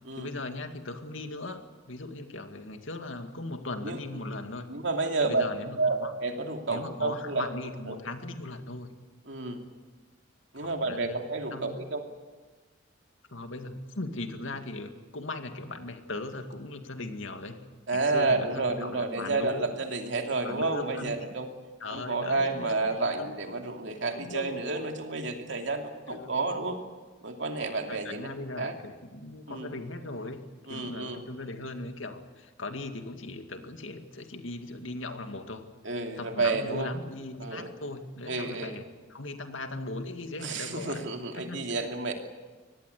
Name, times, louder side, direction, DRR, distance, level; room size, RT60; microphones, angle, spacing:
voice 1, 0.2-4.7 5.2-6.1 6.7-8.9 10.6-11.2 11.5-11.8 13.3-17.6 17.9-19.7 20.4-21.2 21.8-23.3 24.1-24.6 26.1-26.5 27.9-30.4 30.7-35.6 36.2-38.8 39.1-41.0 41.3-41.6, left 2 dB, 85° left, 6 dB, 2.2 m, -38 dB
voice 2, 4.7-5.5 5.8-7.4 7.9-8.0 9.3-9.6 10.5-12.0 17.9-21.5 21.9-26.8 27.2-28.3 28.6-28.7 29.5-29.7 30.7-31.2 35.8-36.9 37.4-37.7 38.3-38.8 40.4-42.1, right 3 dB, 65° right, 3 dB, 2.8 m, -30 dB
24.5 x 18.5 x 8.4 m, 1.3 s
head